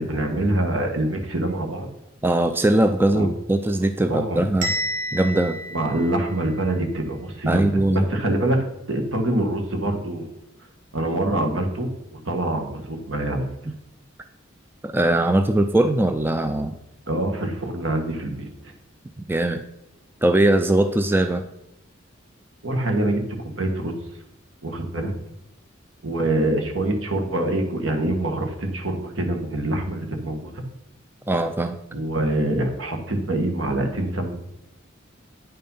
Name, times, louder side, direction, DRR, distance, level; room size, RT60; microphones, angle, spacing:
voice 1, 0.0-1.9 3.1-3.3 4.1-4.4 5.7-10.4 10.9-13.5 17.1-18.5 22.6-23.9 24.6-25.1 26.0-30.6 31.9-34.3, right 1 dB, 70° right, 4 dB, 1.7 m, -25 dB
voice 2, 2.2-4.7 5.1-5.6 7.4-8.0 13.7-13.8 14.8-16.8 19.2-19.6 20.2-21.5 31.3-31.8, right 1 dB, 10° right, 7 dB, 0.4 m, -20 dB
Bell, 4.6-6.7, equal, 40° right, 1.7 m, -30 dB
9.4 x 5.5 x 5.6 m, 0.86 s
head